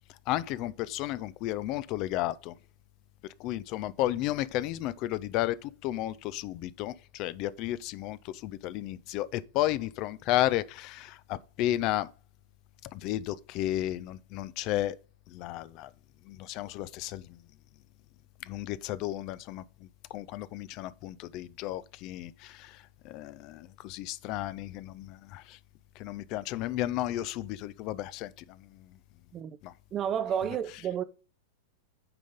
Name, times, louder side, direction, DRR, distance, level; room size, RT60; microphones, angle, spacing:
voice 1, 0.3-2.5 3.4-12.1 12.9-15.0 15.3-15.9 16.3-17.4 18.4-25.6 26.0-28.9 29.6-29.7, left 14 dB, 45° left, 0.4 m, -33 dB
voice 2, 29.9-31.0, right 9 dB, 30° right, 0.5 m, -31 dB
8.9 x 3.9 x 5.1 m
figure-of-eight pair, 95°, 0 cm